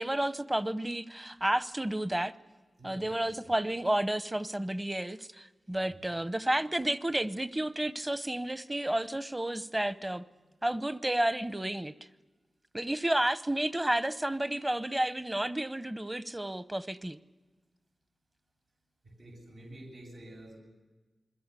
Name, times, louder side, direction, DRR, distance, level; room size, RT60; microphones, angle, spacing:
voice 1, 0.0-2.3 2.8-10.3 10.6-11.9 12.7-17.2, right 1 dB, 15° right, 0.8 m, -31 dB
voice 2, 2.8-3.5 5.8-6.0 10.3-10.4 19.0-20.6, right 1 dB, 85° right, 7.9 m, -50 dB
28.0 x 22.0 x 8.3 m
wide cardioid pair, 100°, 0 cm